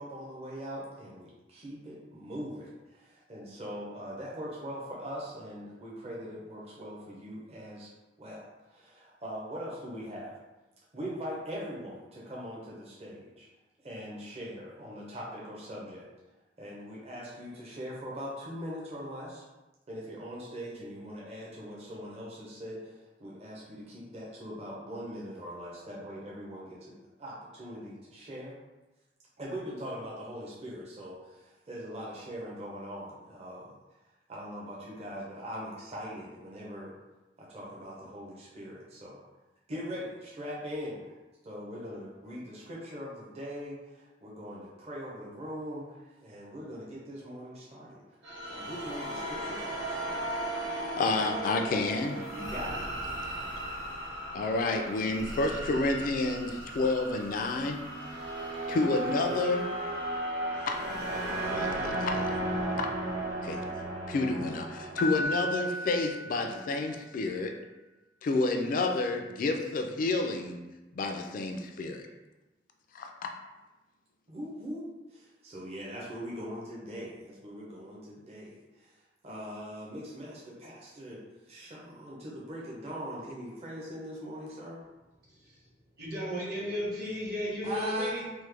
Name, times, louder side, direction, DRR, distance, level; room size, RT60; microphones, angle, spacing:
voice 1, 0.0-7.9 8.2-10.4 10.9-13.5 13.8-16.1 16.6-19.4 19.9-22.9 23.2-28.6 29.4-33.7 34.3-36.9 37.4-39.2 39.7-41.1 41.4-45.9 46.2-48.0 48.5-50.3 52.3-52.8 74.3-78.9 79.2-84.8 87.6-88.1, equal, 35° right, -5 dB, 0.6 m, -41 dB
sound 1, 48.2-65.2, right 1 dB, 90° right, 1.2 m, -35 dB
voice 2, 50.7-52.2 54.3-57.8 58.7-59.7 60.7-60.8 61.5-62.4 62.8-62.9 63.4-63.6 64.1-67.6 68.2-70.6 70.9-72.1 72.9-73.3, left 3 dB, 50° left, 4 dB, 0.3 m, -30 dB
Piano, 65.0-67.1, left 1 dB, 85° left, 0.7 m, -35 dB
voice 3, 85.3-85.7 86.0-88.4, equal, 60° right, -7 dB, 1.3 m, -35 dB
3.1 x 2.1 x 3.3 m, 1.1 s
head